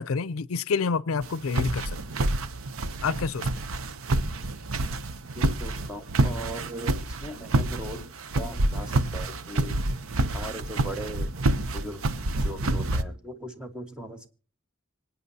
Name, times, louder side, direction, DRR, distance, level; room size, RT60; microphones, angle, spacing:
voice 1, 0.0-2.0 3.0-3.5, left 5 dB, 85° left, 0.5 m, -28 dB
sound 1, 1.2-13.0, right 2 dB, 85° right, 0.8 m, -28 dB
voice 2, 5.3-9.8 10.3-11.3 11.7-12.1 12.4-14.3, equal, 5° right, 1.4 m, -39 dB
25.5 x 9.1 x 2.8 m
head